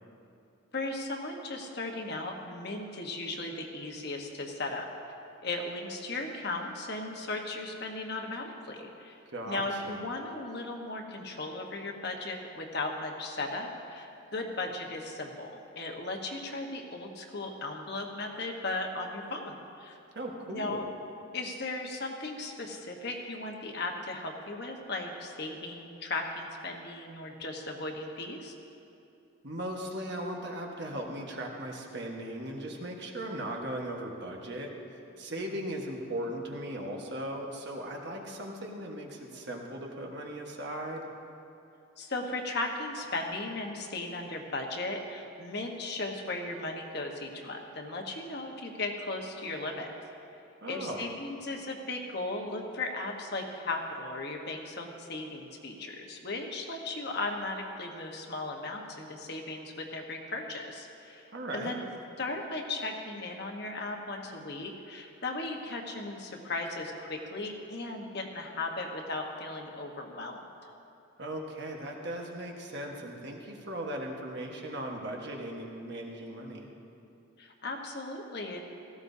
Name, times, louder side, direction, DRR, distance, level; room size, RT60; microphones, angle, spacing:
voice 1, 0.7-4.9 5.4-9.2 9.5-20.0 20.5-20.8 21.3-28.5 35.5-35.6 42.0-49.9 50.7-61.8 62.2-70.5 77.4-78.6, left 2 dB, 50° left, 2 dB, 1.2 m, -36 dB
voice 2, 9.3-10.0 20.1-20.8 29.4-34.7 35.2-41.1 50.6-51.1 61.3-61.8 71.2-76.7, right 1 dB, 50° right, 0 dB, 1.4 m, -38 dB
17.0 x 15.0 x 2.8 m, 2.8 s
head